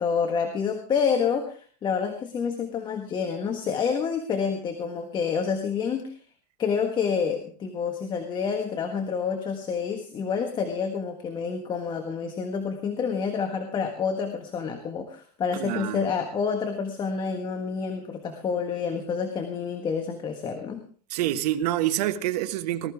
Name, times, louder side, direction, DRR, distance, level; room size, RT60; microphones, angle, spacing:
voice 1, 0.0-6.2 6.6-20.8, left 6 dB, 20° left, 1.5 m, -28 dB
voice 2, 15.5-16.1 21.1-22.9, right 13 dB, 75° right, 1.5 m, -27 dB
19.5 x 13.5 x 3.6 m
supercardioid pair, 160°, 21 cm